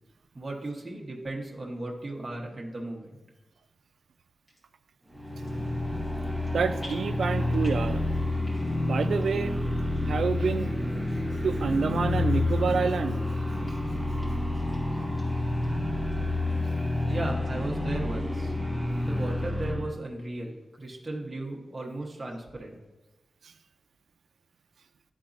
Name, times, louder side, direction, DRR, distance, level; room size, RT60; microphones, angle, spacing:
voice 1, 0.3-3.1 17.0-18.5 19.0-22.8, right 2 dB, 30° right, -2 dB, 0.9 m, -36 dB
sound 1, 4.5-4.7 5.3-5.8 6.0-6.5 6.8-7.9 8.3-8.8 9.2-9.3 9.9-10.0 10.7-10.8 11.5-11.6 12.0-12.1 12.6-13.2 13.6-13.7 14.2-14.3 14.6-15.2 15.6-15.7 16.1-16.2 16.6-17.0 17.4-17.5, left 1 dB, 45° left, 1.8 m, -50 dB
sound 2, 5.1-19.9, left 2 dB, 5° right, 0.6 m, -29 dB
voice 2, 6.5-8.0 8.8-9.5 10.1-10.7 11.4-13.2, right 5 dB, 85° right, 10 dB, 0.3 m, -28 dB
10.5 x 3.9 x 2.5 m, 1.1 s
wide cardioid pair, 105°, 0 cm